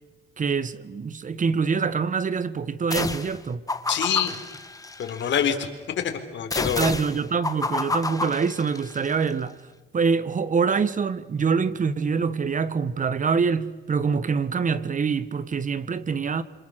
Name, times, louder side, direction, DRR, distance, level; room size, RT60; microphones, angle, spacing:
voice 1, 0.4-3.6 6.8-9.6 9.9-16.4, right 5 dB, 40° right, 1.5 m, -25 dB
sound 1, 2.9-3.4 3.7-5.4 6.5-9.1, left 3 dB, 15° left, 1.7 m, -30 dB
voice 2, 3.9-4.3 5.0-5.7 6.0-6.9, left 8 dB, 65° left, 3.6 m, -25 dB
27.0 x 26.0 x 6.4 m
cardioid pair, 90°, 20 cm